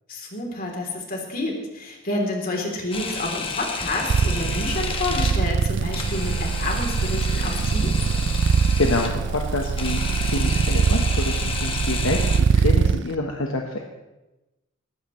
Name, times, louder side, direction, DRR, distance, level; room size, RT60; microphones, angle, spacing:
voice 1, 0.1-8.0, left 2 dB, 45° left, 0 dB, 3.4 m, -29 dB
Camera, 2.9-12.4, left 4 dB, 25° left, 1.4 m, -32 dB
sound 1, 4.1-13.0, right 5 dB, 60° right, 0.4 m, -22 dB
voice 2, 8.8-12.2 12.5-13.8, left 2 dB, 75° left, 2 dB, 1.3 m, -27 dB
19.5 x 15.0 x 3.2 m, 1.0 s
head